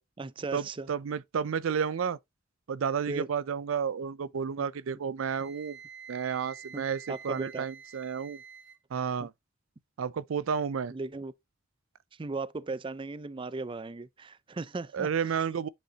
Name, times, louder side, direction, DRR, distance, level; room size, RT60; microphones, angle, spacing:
voice 1, 0.0-0.9 3.1-3.3 4.6-4.7 6.7-7.7 9.2-9.3 10.9-11.3 12.2-15.7, right 3 dB, 25° right, 0.4 m, -37 dB
voice 2, 0.9-2.2 2.7-5.8 6.1-8.4 8.9-9.3 10.0-10.9 14.9-15.7, right 7 dB, 90° right, 0.4 m, -31 dB
Wind instrument woodwind instrument, 5.3-8.8, right 7 dB, 60° right, 1.5 m, -48 dB
8.4 x 6.4 x 2.8 m
head